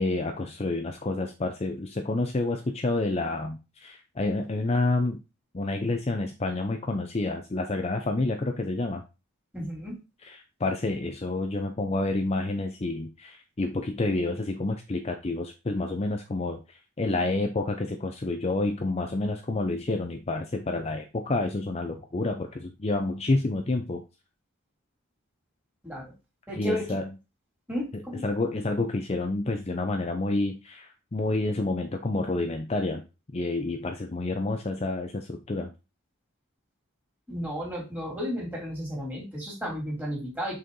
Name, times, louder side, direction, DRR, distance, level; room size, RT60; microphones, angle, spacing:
voice 1, 0.0-5.2 5.5-9.0 10.2-24.0 26.6-27.1 27.9-33.0 33.3-35.7, left 2 dB, 30° left, 4 dB, 0.5 m, -29 dB
voice 2, 9.5-9.9 25.8-26.1 26.5-27.0 27.7-28.2 37.3-40.6, equal, 10° right, -3 dB, 2.8 m, -33 dB
6.4 x 4.4 x 3.8 m, 0.28 s
head